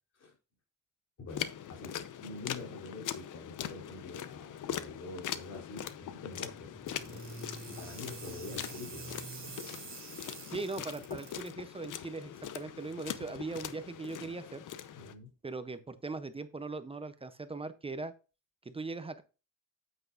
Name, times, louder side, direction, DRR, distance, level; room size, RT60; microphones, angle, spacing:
voice 1, 1.2-7.3 7.7-9.3 15.0-15.3, left 3 dB, 50° left, 3.6 m, -46 dB
sound 1, 1.3-15.2, left 10 dB, 70° left, 0.8 m, -42 dB
sound 2, 5.9-9.9, right 2 dB, 15° left, 2.6 m, -50 dB
sound 3, 6.9-11.5, right 5 dB, 40° right, 3.1 m, -48 dB
voice 2, 10.5-14.6 15.4-18.1 18.6-19.2, right 3 dB, 20° right, 0.6 m, -40 dB
9.2 x 8.2 x 2.5 m
cardioid pair, 150°, 32 cm